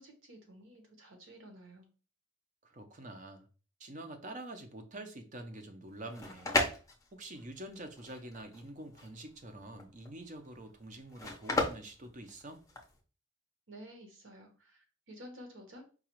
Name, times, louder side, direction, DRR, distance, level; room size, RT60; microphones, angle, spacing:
voice 1, 0.0-1.9 13.7-15.9, equal, 70° right, 4 dB, 1.0 m, -52 dB
voice 2, 2.6-3.5 3.8-6.5 7.1-12.6, right 1 dB, 40° right, 7 dB, 0.6 m, -46 dB
sound 1, 5.9-13.0, left 2 dB, 15° left, 0.6 m, -36 dB
4.8 x 2.3 x 3.0 m, 0.36 s
head